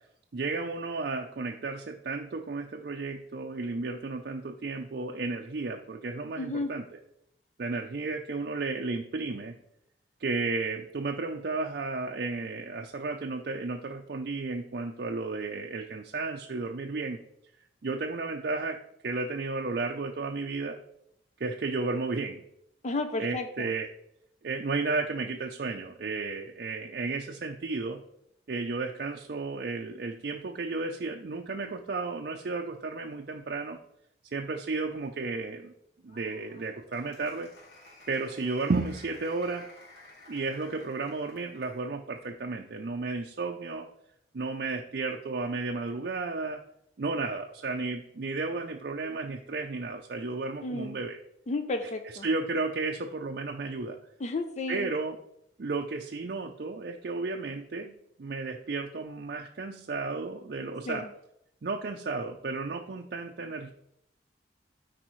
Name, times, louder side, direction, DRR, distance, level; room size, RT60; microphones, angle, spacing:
voice 1, 0.3-6.8 7.6-9.6 10.2-17.2 17.8-18.8 19.0-20.8 21.4-22.4 23.2-23.9 24.4-28.0 28.5-33.8 34.3-35.7 36.0-37.5 38.1-39.7 40.3-43.9 44.3-46.6 47.0-51.2 52.2-54.0 54.7-55.2 55.6-61.1 61.6-63.7, right 3 dB, 60° right, 2 dB, 0.5 m, -33 dB
voice 2, 6.4-6.7 22.8-23.7 50.6-51.0 51.5-52.3 54.2-54.9 60.9-61.1, left 2 dB, 40° left, 7 dB, 0.5 m, -32 dB
Applause, 36.1-41.9, left 2 dB, 70° left, 2.6 m, -53 dB
13.0 x 4.6 x 3.1 m, 0.78 s
head